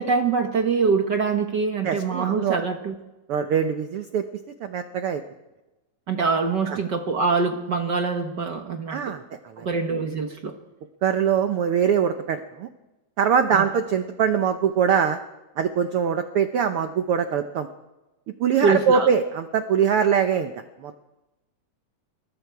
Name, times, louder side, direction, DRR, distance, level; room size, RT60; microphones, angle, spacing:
voice 1, 0.0-2.9 6.1-9.1 9.6-10.6 13.5-13.6 18.6-19.1, right 4 dB, 60° right, 5 dB, 1.1 m, -24 dB
voice 2, 1.8-2.5 3.3-4.2 4.6-5.2 6.7-6.8 8.9-9.7 11.0-12.7 13.2-15.2 15.6-17.7 18.4-20.5 20.8-21.0, right 7 dB, 80° right, 8 dB, 1.2 m, -23 dB
25.5 x 21.5 x 4.7 m, 1.0 s
omnidirectional pair, 3.7 m